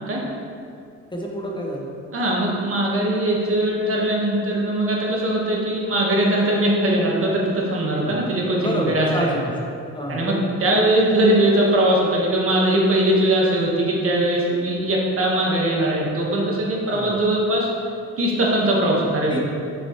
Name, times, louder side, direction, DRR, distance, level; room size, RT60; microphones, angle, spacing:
voice 1, 1.1-2.0 8.0-8.2 8.6-9.5 9.9-10.5 16.9-17.2 19.3-19.4, equal, 15° left, -2 dB, 0.8 m, -28 dB
voice 2, 2.1-9.4 10.1-10.3 10.6-17.7 18.2-19.4, right 1 dB, 45° right, -3 dB, 1.5 m, -20 dB
6.3 x 5.9 x 3.1 m, 2.5 s
cardioid pair, 90°, 30 cm